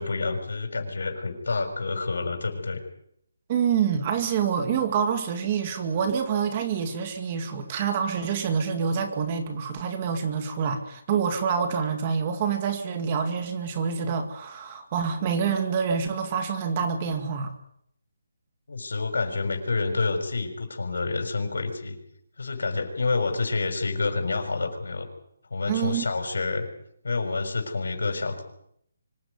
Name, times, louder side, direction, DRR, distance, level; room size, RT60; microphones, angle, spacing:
voice 1, 0.0-2.8 18.7-22.0 22.4-25.1 25.5-26.7 27.0-28.4, left 3 dB, 80° left, 5 dB, 6.3 m, -28 dB
voice 2, 3.5-17.5 25.7-26.0, right 7 dB, 20° right, 7 dB, 2.2 m, -27 dB
25.0 x 15.5 x 9.6 m, 0.73 s
hypercardioid pair, 175°, 0 cm